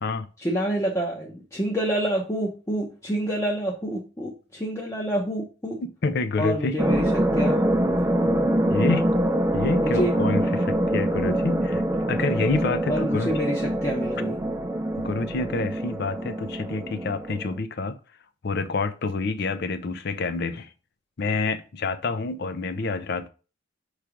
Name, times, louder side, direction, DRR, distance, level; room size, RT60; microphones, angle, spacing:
voice 1, 0.4-5.8 6.4-7.0 7.4-7.6 9.8-10.2 12.9-14.4, equal, 15° left, 0.7 m, -27 dB
voice 2, 5.8-6.8 8.7-9.2 9.5-13.3 15.0-18.0 18.4-20.7 21.2-23.3, left 3 dB, 55° left, 0.6 m, -27 dB
sound 1, 6.8-17.6, right 1 dB, 15° right, 0.4 m, -25 dB
5.8 x 3.2 x 5.0 m
head